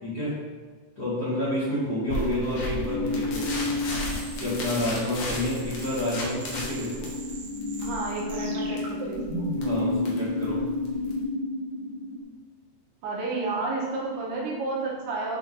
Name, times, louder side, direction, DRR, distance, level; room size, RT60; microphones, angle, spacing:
voice 1, 0.0-0.4 0.9-3.6 4.4-7.1 9.6-10.7, left 1 dB, 65° left, -13 dB, 0.9 m, -29 dB
sound 1, 2.1-11.2, left 1 dB, 80° left, 1.8 m, -35 dB
sound 2, 2.7-12.2, left 2 dB, 50° left, 2.1 m, -32 dB
sound 3, 3.9-9.8, right 2 dB, 90° right, 1.6 m, -40 dB
voice 2, 7.8-9.5 13.0-15.4, right 3 dB, 75° right, -5 dB, 2.7 m, -31 dB
10.0 x 3.5 x 2.7 m, 1.5 s
omnidirectional pair, 5.1 m